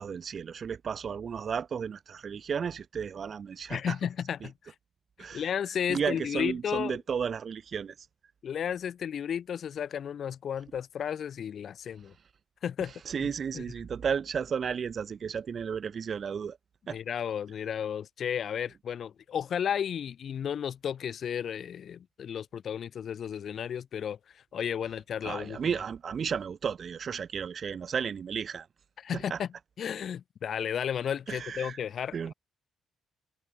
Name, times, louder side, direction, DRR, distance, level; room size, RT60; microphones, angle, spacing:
voice 1, 0.0-4.0 4.4-4.5 5.2-5.5 5.9-8.1 13.0-16.6 16.9-17.0 25.2-28.7 29.1-29.4 31.3-31.8 32.1-32.3, right 7 dB, 45° right, 0.5 m, -33 dB
voice 2, 3.7-4.7 5.3-7.0 8.4-12.1 12.6-12.9 13.5-13.6 16.9-25.6 29.0-29.5 29.8-32.3, left 8 dB, 55° left, 0.4 m, -33 dB
figure-of-eight pair, 40°, 0 cm